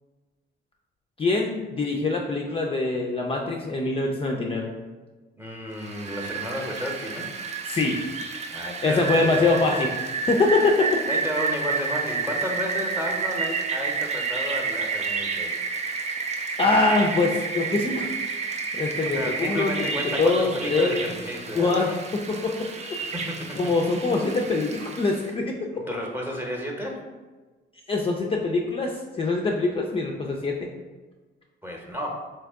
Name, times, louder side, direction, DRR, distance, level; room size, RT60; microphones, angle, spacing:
voice 1, 1.2-4.7 7.7-8.0 8.8-9.9 10.3-11.0 16.6-18.1 18.7-21.1 21.5-22.6 23.6-25.6 27.9-30.7, left 3 dB, 30° left, 0 dB, 0.4 m, -24 dB
voice 2, 5.4-7.3 8.5-9.8 11.1-15.5 16.0-16.1 19.0-22.0 23.0-23.6 25.7-27.0 31.6-32.1, equal, 10° right, 0 dB, 0.8 m, -32 dB
Rain, 5.8-25.3, right 5 dB, 35° right, 0.4 m, -30 dB
3.5 x 2.8 x 3.5 m, 1.3 s
cardioid pair, 90°, 20 cm